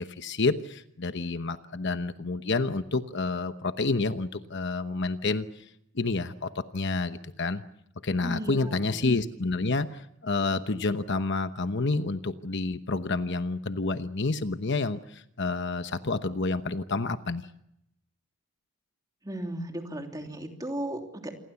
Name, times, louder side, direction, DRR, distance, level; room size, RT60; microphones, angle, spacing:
voice 1, 0.0-5.7 5.9-7.6 8.0-17.5, left 3 dB, 50° left, 10 dB, 1.0 m, -29 dB
voice 2, 8.2-9.0 19.2-21.3, right 1 dB, 15° right, 3 dB, 3.1 m, -35 dB
28.0 x 22.5 x 7.1 m, 0.79 s
head